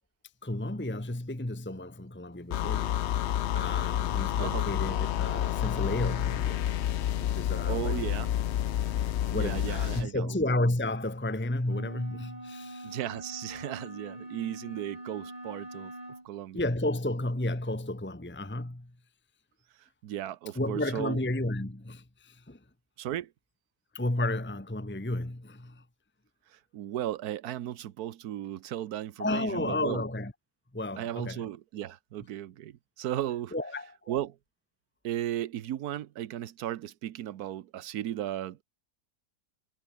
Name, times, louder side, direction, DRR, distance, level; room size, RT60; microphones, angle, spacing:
voice 1, 0.4-2.9 3.5-6.6 7.2-7.9 9.3-12.9 16.5-18.9 20.5-22.6 23.9-25.8 29.2-30.3 30.7-31.4 33.5-33.9, left 1 dB, 5° left, 1.4 m, -32 dB
sound 1, 2.5-10.1, left 11 dB, 60° left, 0.7 m, -29 dB
voice 2, 4.4-4.7 7.7-8.3 9.3-10.4 12.8-15.9 16.2-16.6 20.0-21.2 23.0-23.3 26.5-30.0 31.0-33.5 34.1-34.4 35.0-38.6, right 12 dB, 75° right, 1.3 m, -35 dB
sound 2, 11.6-16.3, right 1 dB, 25° right, 4.2 m, -43 dB
omnidirectional pair, 1.7 m